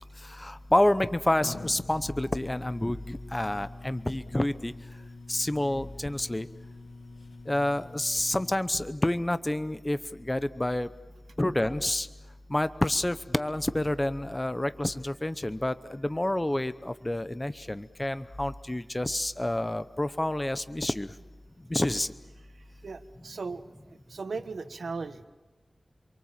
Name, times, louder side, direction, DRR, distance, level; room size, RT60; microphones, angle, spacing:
voice 1, 0.4-4.7 5.3-6.5 7.5-10.9 11.4-12.1 12.5-21.1 21.7-22.1, left 1 dB, 20° left, 13 dB, 0.8 m, -28 dB
sound 1, 0.6-8.6, left 3 dB, 70° left, 1.9 m, -46 dB
voice 2, 22.8-23.6 23.9-25.3, right 4 dB, 80° right, 9 dB, 1.3 m, -37 dB
28.0 x 23.5 x 7.5 m, 1.2 s
wide cardioid pair, 85°, 0 cm